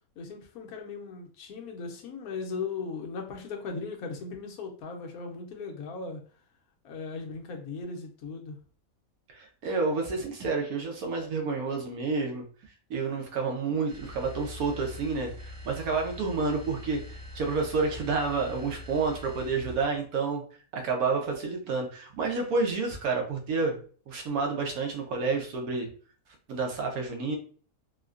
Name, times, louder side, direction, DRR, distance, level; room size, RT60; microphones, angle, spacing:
voice 1, 0.2-6.2 6.8-8.6, left 4 dB, 80° left, 2 dB, 1.2 m, -38 dB
voice 2, 9.3-12.4 12.9-20.4 20.7-23.8 24.1-25.9 26.5-27.4, right 4 dB, 80° right, 2 dB, 1.2 m, -29 dB
sound 1, 13.9-20.0, left 1 dB, 40° right, 1.6 m, -43 dB
3.6 x 2.2 x 2.4 m, 0.42 s
omnidirectional pair, 1.5 m